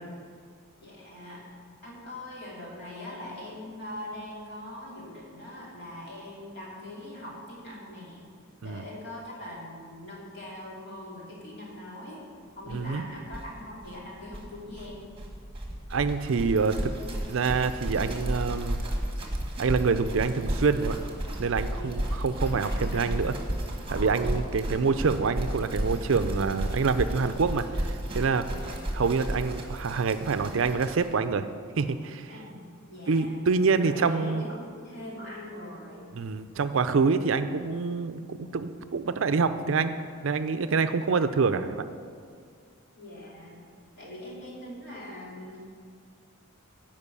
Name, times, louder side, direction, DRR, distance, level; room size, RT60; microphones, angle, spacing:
voice 1, 0.8-8.3 8.6-12.2 12.5-15.1 21.7-23.1 23.9-24.3 28.4-28.8 31.8-31.9 32.3-33.4 33.8-36.1 43.0-43.6 44.0-45.6, left 1 dB, 50° left, -5 dB, 2.8 m, -42 dB
sound 1, 12.7-12.8 13.0-13.1 13.3-31.1, right 1 dB, 25° right, 1.2 m, -33 dB
voice 2, 12.7-13.0 15.9-16.9 17.3-18.8 19.6-21.0 21.4-23.3 23.9-28.4 28.9-31.5 31.8-32.3 33.1-34.4 36.1-40.0 40.2-41.8, right 4 dB, 65° right, 11 dB, 0.5 m, -26 dB
10.5 x 5.3 x 8.3 m, 2.1 s
head